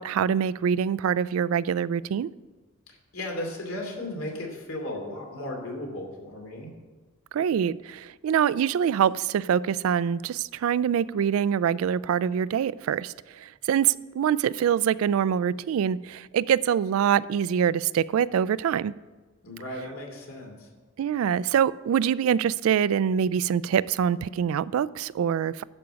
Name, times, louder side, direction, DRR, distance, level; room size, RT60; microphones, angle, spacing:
voice 1, 0.0-2.3 7.3-18.9 21.0-25.6, right 8 dB, 80° right, 18 dB, 0.3 m, -25 dB
voice 2, 2.9-6.7 19.4-20.7, left 1 dB, 85° left, 1 dB, 2.6 m, -35 dB
11.5 x 5.2 x 6.8 m, 1.3 s
head